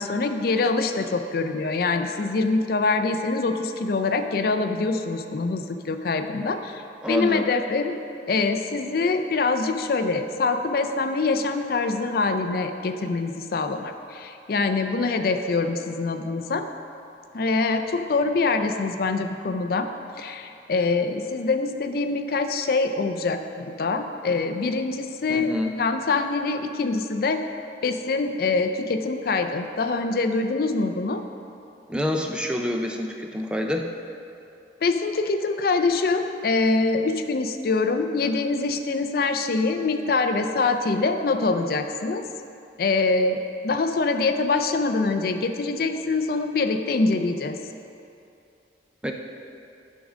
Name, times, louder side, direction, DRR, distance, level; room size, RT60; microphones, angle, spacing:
voice 1, 0.0-7.9 8.3-16.7 17.3-19.9 20.2-25.5 25.8-27.4 27.8-31.2 34.8-42.3 42.8-47.6, left 3 dB, 55° left, 7 dB, 0.4 m, -24 dB
voice 2, 7.0-7.5 25.3-25.7 31.9-33.9 49.0-49.1, left 1 dB, 5° right, 2 dB, 0.4 m, -27 dB
10.5 x 3.7 x 6.2 m, 2.6 s
head